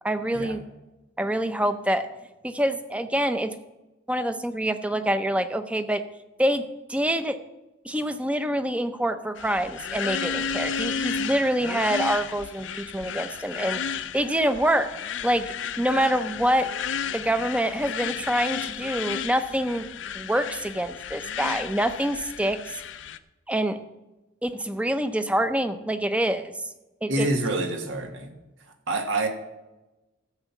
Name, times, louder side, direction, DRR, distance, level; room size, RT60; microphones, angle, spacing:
voice 1, 0.0-0.6 1.2-2.1 2.4-3.5 4.1-6.0 6.4-7.4 7.8-14.9 15.2-15.5 15.8-16.7 17.1-19.9 20.1-22.8 23.5-23.8 24.4-26.7 27.0-27.3, right 1 dB, 5° right, 10 dB, 0.6 m, -26 dB
sound 1, 9.4-23.2, left 7 dB, 70° left, 0.5 m, -33 dB
voice 2, 27.1-28.3 28.9-29.3, right 2 dB, 80° right, 4 dB, 1.6 m, -27 dB
14.5 x 5.5 x 7.2 m, 1.1 s
head